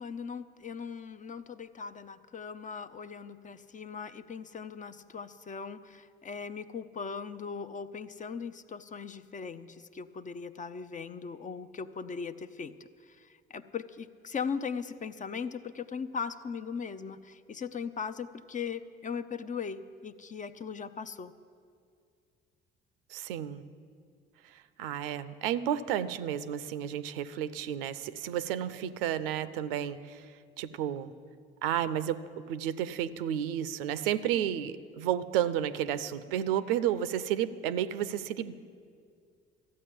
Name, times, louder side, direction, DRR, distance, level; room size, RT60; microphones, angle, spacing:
voice 1, 0.0-12.7 13.0-21.3, left 6 dB, 25° left, 11 dB, 0.6 m, -39 dB
voice 2, 23.1-23.6 24.4-30.3 30.6-31.1 31.6-38.5, right 10 dB, 70° right, 14 dB, 0.6 m, -32 dB
14.0 x 8.6 x 8.5 m, 2.2 s
figure-of-eight pair, 50°, 30 cm